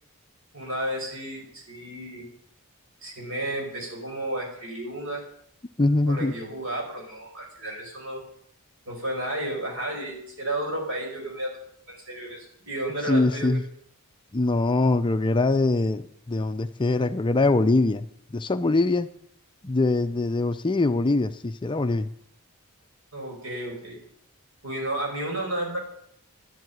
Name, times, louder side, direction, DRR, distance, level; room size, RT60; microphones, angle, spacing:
voice 1, 0.5-2.3 3.0-5.2 6.1-8.2 8.9-11.5 11.9-13.6 23.1-24.0 24.6-25.8, right 1 dB, 65° right, 0 dB, 5.1 m, -32 dB
voice 2, 5.8-6.3 13.1-13.6 14.3-18.1 18.3-19.1 19.6-22.1, left 2 dB, 20° left, 10 dB, 0.4 m, -23 dB
11.0 x 7.8 x 9.3 m, 0.70 s
head